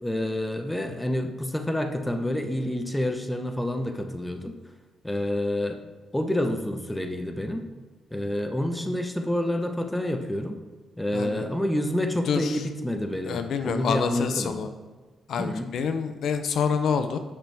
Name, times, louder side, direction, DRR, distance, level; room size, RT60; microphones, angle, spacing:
voice 1, 0.0-4.5 5.0-5.8 6.1-7.7 8.1-10.6 11.0-14.6 15.4-15.7, left 1 dB, 5° left, 5 dB, 0.8 m, -28 dB
voice 2, 11.1-11.4 12.3-12.6 13.2-14.7 15.3-17.2, left 6 dB, 65° left, 9 dB, 0.6 m, -27 dB
8.8 x 6.1 x 3.4 m, 1.4 s
cardioid pair, 115°, 0 cm